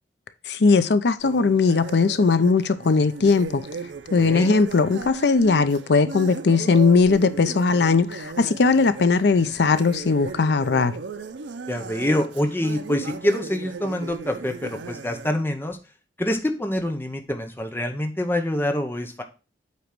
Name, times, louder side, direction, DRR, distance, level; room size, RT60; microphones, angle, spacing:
voice 1, 0.5-3.6 4.1-10.9, left 4 dB, 65° left, 0.5 m, -19 dB
sound 1, 1.2-15.3, right 4 dB, 85° right, 0.6 m, -36 dB
voice 2, 4.2-4.5 11.7-15.8 16.2-19.2, left 1 dB, 10° left, 0.8 m, -26 dB
8.3 x 3.1 x 5.9 m
head